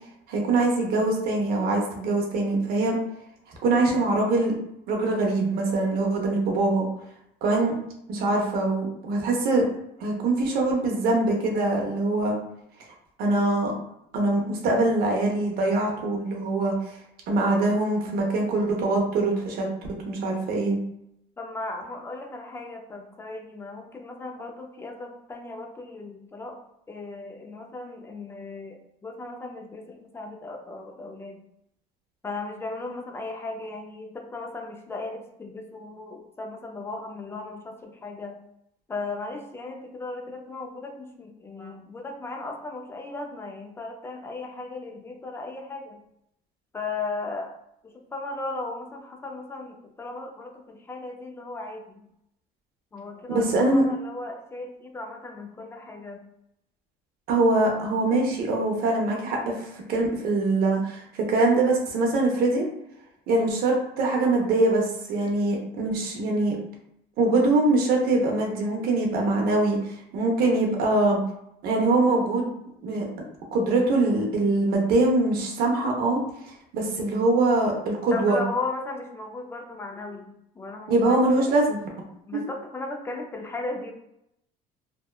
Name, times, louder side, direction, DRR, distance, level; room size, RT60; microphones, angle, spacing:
voice 1, 0.3-3.0 3.6-4.5 4.9-6.9 7.4-7.7 8.1-9.6 10.0-12.3 13.2-13.7 14.1-16.7 17.3-19.7 20.1-20.8 53.3-53.8 57.3-62.7 63.3-66.5 67.2-69.8 70.1-71.2 71.6-72.5 72.8-73.0 73.5-76.2 76.7-78.4 80.9-81.8 82.3-82.4, right 2 dB, 60° right, 0 dB, 0.7 m, -23 dB
voice 2, 21.4-26.6 26.9-31.4 32.2-38.4 38.9-46.0 46.7-47.5 47.8-52.1 52.9-56.2 78.1-80.3 80.5-81.5 82.3-83.9, left 3 dB, 15° left, 2 dB, 0.4 m, -36 dB
2.7 x 2.2 x 2.3 m, 0.80 s
cardioid pair, 130°, 18 cm